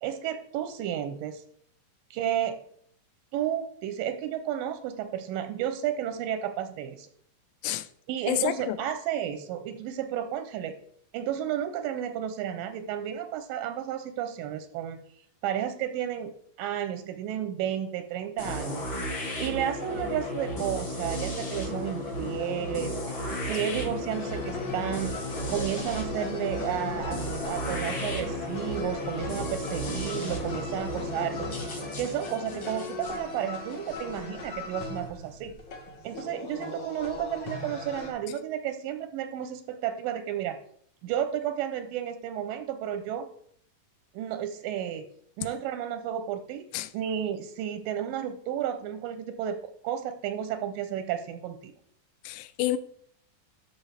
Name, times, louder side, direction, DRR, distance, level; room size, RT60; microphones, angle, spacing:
voice 1, 0.0-1.4 2.1-2.6 3.3-7.1 8.1-10.8 11.1-15.0 15.4-16.3 16.6-18.9 19.4-25.2 25.5-27.2 27.5-31.7 32.0-35.6 36.0-40.6 41.0-43.3 44.1-45.1 45.4-51.7, right 10 dB, 85° right, 2.3 m, -32 dB
voice 2, 8.3-8.8 46.7-46.9 52.2-52.8, left 13 dB, 85° left, 2.3 m, -29 dB
sound 1, 18.4-34.2, left 1 dB, 40° left, 1.7 m, -34 dB
sound 2, 24.1-38.1, left 3 dB, 70° left, 1.1 m, -39 dB
12.0 x 6.2 x 3.4 m
omnidirectional pair, 4.0 m